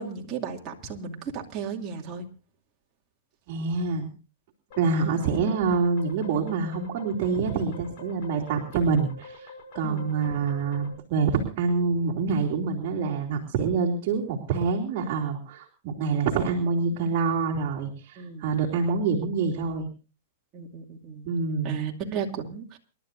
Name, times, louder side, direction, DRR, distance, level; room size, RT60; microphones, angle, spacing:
voice 1, 0.0-2.3 9.8-10.2 18.2-18.4 20.5-21.3 21.6-22.8, right 6 dB, 25° right, 0 dB, 2.5 m, -34 dB
voice 2, 3.5-4.1 4.8-19.9 21.2-21.8, right 4 dB, 45° right, 0 dB, 2.9 m, -26 dB
sound 1, 4.7-10.9, left 2 dB, 50° left, 6.0 m, -45 dB
28.5 x 12.0 x 2.6 m, 0.34 s
hypercardioid pair, 145°, 0 cm